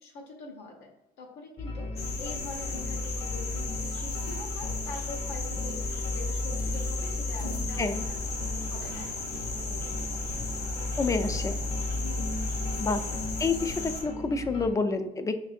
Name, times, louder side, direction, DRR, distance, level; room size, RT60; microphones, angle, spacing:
voice 1, 0.0-0.9 1.2-10.2 12.0-12.2 12.8-13.1 13.5-13.6, left 3 dB, 90° left, -1 dB, 1.0 m, -45 dB
sound 1, 1.6-14.7, left 2 dB, 35° left, 0.8 m, -35 dB
sound 2, 2.0-14.0, left 3 dB, 65° left, 1.0 m, -36 dB
sound 3, 7.7-14.1, right 4 dB, 50° right, 0.5 m, -46 dB
voice 2, 11.0-11.6 12.8-13.0 13.4-15.4, left 4 dB, 20° left, 9 dB, 0.3 m, -28 dB
5.5 x 2.6 x 2.5 m, 0.98 s
cardioid pair, 110°, 17 cm